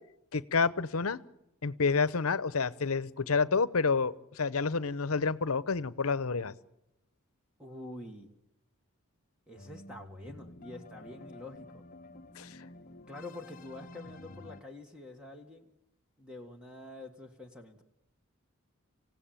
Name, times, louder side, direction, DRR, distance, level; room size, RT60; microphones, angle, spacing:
voice 1, 0.3-1.2 1.6-6.5 12.4-12.5, left 4 dB, 85° left, 18 dB, 0.9 m, -29 dB
voice 2, 7.6-8.4 9.5-11.8 13.1-15.7 16.2-17.8, left 2 dB, 5° right, 4 dB, 1.8 m, -47 dB
sound 1, 9.5-14.6, left 2 dB, 40° left, 0.9 m, -50 dB
27.0 x 16.5 x 9.0 m, 0.87 s
head